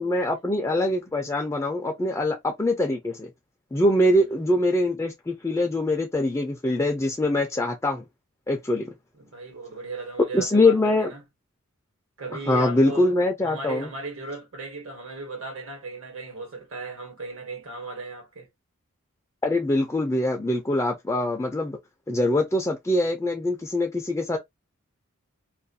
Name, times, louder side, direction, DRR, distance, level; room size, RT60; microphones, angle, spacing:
voice 1, 0.0-3.3 3.7-8.0 8.5-8.9 10.3-11.1 12.5-13.9 19.4-21.8 22.1-24.4, left 1 dB, 15° left, 0.3 m, -23 dB
voice 2, 9.2-11.2 12.2-13.1 13.4-18.5, right 3 dB, 70° right, 1.1 m, -36 dB
2.4 x 2.2 x 2.6 m
head